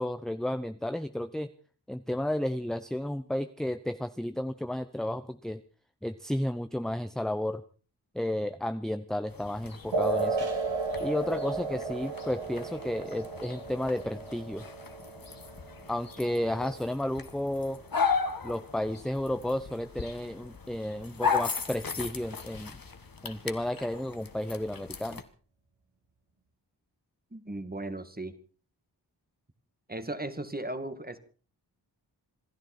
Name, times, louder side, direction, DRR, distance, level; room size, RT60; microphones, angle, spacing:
voice 1, 0.0-1.5 1.9-5.6 6.0-7.6 8.1-10.5 11.0-14.6 15.9-17.8 18.4-22.8 23.2-25.2, left 1 dB, ahead, 10 dB, 0.9 m, -32 dB
sound 1, 9.3-25.2, left 5 dB, 50° left, 1.9 m, -37 dB
sound 2, 9.9-16.9, right 3 dB, 85° right, 2.9 m, -34 dB
voice 2, 27.3-28.4 29.9-31.2, right 2 dB, 20° right, 10 dB, 2.2 m, -36 dB
27.0 x 11.5 x 4.5 m, 0.39 s
cardioid pair, 45°, 43 cm